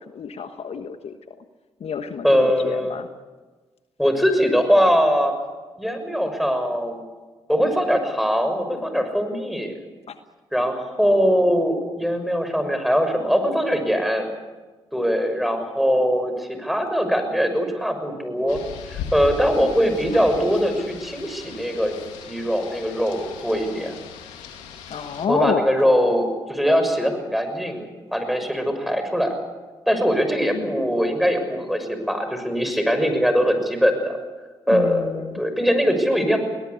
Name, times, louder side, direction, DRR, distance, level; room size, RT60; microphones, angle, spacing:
voice 1, 0.1-1.4 1.8-3.1 10.1-10.2 24.9-25.7 30.5-30.7 34.7-35.4, left 7 dB, 60° left, 9 dB, 1.3 m, -29 dB
voice 2, 2.2-3.0 4.0-5.3 5.8-7.0 7.5-9.7 10.5-14.3 14.9-18.6 18.9-21.9 22.3-24.0 25.3-29.4 29.9-34.2 34.7-36.4, equal, ahead, 7 dB, 6.3 m, -21 dB
Rain, 18.5-25.3, left 6 dB, 85° left, 2.4 m, -38 dB
21.5 x 19.0 x 8.4 m, 1.3 s
hypercardioid pair, 45°, 12 cm